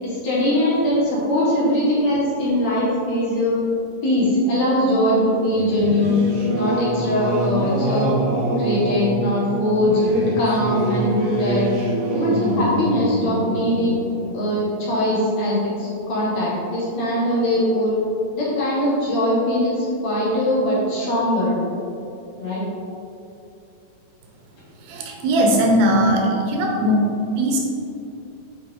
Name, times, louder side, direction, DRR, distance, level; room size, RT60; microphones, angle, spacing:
voice 1, 0.0-3.6 4.0-6.2 6.5-8.1 8.6-11.7 12.1-14.0 14.3-18.0 18.3-21.6 22.4-22.6 26.0-26.2, left 1 dB, 55° left, -7 dB, 2.5 m, -21 dB
Singing / Musical instrument, 5.5-15.6, right 1 dB, 65° right, 3.0 m, -25 dB
voice 2, 24.8-27.7, equal, 90° right, 1 dB, 2.9 m, -19 dB
10.0 x 4.6 x 3.6 m, 2.6 s
omnidirectional pair, 4.2 m